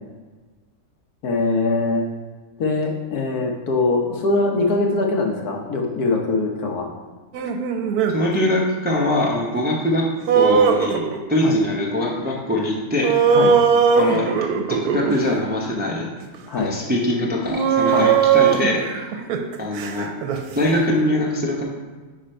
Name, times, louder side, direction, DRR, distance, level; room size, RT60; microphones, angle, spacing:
voice 1, 1.2-2.0 2.6-6.9 11.4-11.6 13.3-13.5 16.5-16.7 17.9-18.1, left 3 dB, 85° left, 1 dB, 1.4 m, -22 dB
sound 1, 7.3-8.2 10.3-11.4 13.0-15.2 16.3-16.4 17.5-20.4, right 6 dB, 85° right, 1.1 m, -19 dB
voice 2, 8.1-10.0 10.3-13.1 13.9-14.4 14.7-16.1 16.6-19.0 19.6-20.1 20.5-21.6, left 1 dB, 10° right, -2 dB, 0.5 m, -22 dB
5.1 x 5.0 x 4.4 m, 1.3 s
omnidirectional pair, 1.6 m